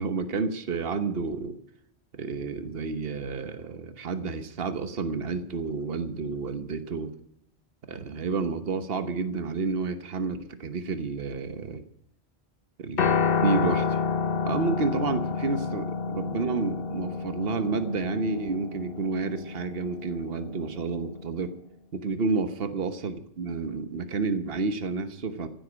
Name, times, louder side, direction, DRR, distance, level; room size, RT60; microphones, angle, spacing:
voice 1, 0.0-1.6 2.1-7.1 7.9-11.8 12.8-13.1 13.4-14.0 14.5-21.5 21.9-25.5, right 4 dB, 60° right, 10 dB, 1.4 m, -30 dB
Piano, 13.0-21.2, left 6 dB, 60° left, 1.1 m, -29 dB
15.5 x 7.8 x 9.6 m, 0.74 s
omnidirectional pair, 1.1 m